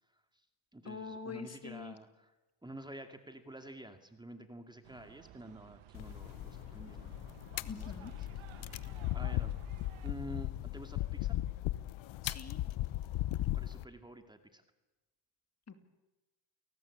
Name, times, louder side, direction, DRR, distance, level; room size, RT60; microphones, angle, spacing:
voice 1, 0.1-0.5 0.7-2.4 2.6-7.1 7.7-8.9 9.1-9.5 10.0-11.4 13.5-14.6, right 1 dB, 10° right, 7 dB, 2.3 m, -49 dB
voice 2, 0.9-1.9 7.6-8.1 12.2-12.6 15.7-15.8, left 5 dB, 30° left, 8 dB, 2.6 m, -44 dB
sound 1, 4.8-10.1, right 13 dB, 80° right, 1.6 m, -55 dB
sound 2, 5.9-13.8, left 15 dB, 70° left, 1.0 m, -37 dB
29.0 x 19.0 x 8.6 m, 1.1 s
cardioid pair, 90°, 48 cm